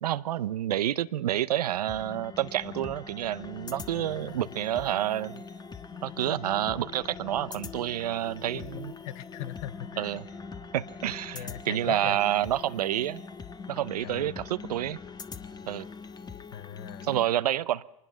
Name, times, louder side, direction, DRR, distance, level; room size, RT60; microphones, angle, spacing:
voice 1, 0.0-5.4 6.0-8.9 10.0-10.3 10.7-13.2 13.7-15.0 15.7-15.8 17.0-17.8, right 12 dB, 80° right, 0.7 m, -29 dB
sound 1, 1.9-17.3, left 5 dB, 20° left, 1.3 m, -43 dB
voice 2, 3.9-4.4 8.5-10.2 11.3-12.2 14.0-14.3 16.5-17.1, left 11 dB, 65° left, 1.0 m, -40 dB
24.0 x 20.0 x 6.2 m
hypercardioid pair, 90°, 20 cm